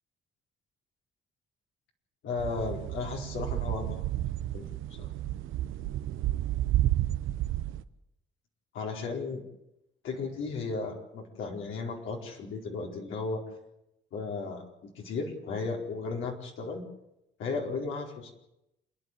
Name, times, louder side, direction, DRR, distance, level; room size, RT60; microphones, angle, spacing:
voice 1, 2.2-4.0 4.5-4.6 5.0-5.1 8.7-9.4 10.0-13.4 14.1-14.6 14.9-16.8 17.4-18.3, left 4 dB, 80° left, 0 dB, 4.5 m, -35 dB
sound 1, 2.4-7.8, right 14 dB, 85° right, 0.9 m, -31 dB
27.5 x 10.0 x 9.4 m, 0.88 s
cardioid pair, 90°, 20 cm